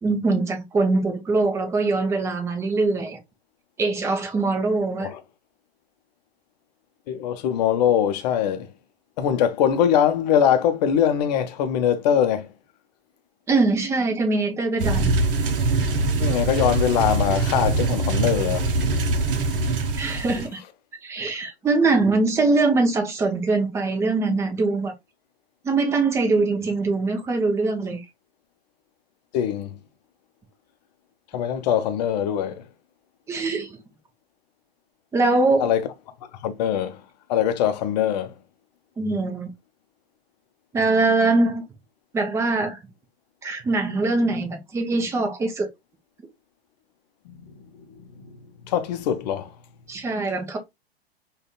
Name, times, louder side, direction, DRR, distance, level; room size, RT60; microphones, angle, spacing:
voice 1, 0.0-3.2 3.8-5.1 13.5-15.2 20.0-20.6 21.0-24.9 25.6-28.0 33.3-33.8 35.1-35.7 39.0-39.5 40.7-41.6 42.1-42.8 43.4-45.7 49.9-50.6, right 3 dB, 10° right, 0.6 m, -22 dB
voice 2, 7.1-8.7 9.2-12.5 16.2-18.7 29.3-29.8 31.3-32.6 35.6-35.8 36.4-37.0 37.3-38.3 47.3-47.5 48.0-49.5, left 9 dB, 40° left, 0.7 m, -22 dB
sound 1, 14.8-20.5, right 3 dB, 60° right, 0.8 m, -23 dB
4.9 x 2.4 x 2.2 m
figure-of-eight pair, 105°, 32 cm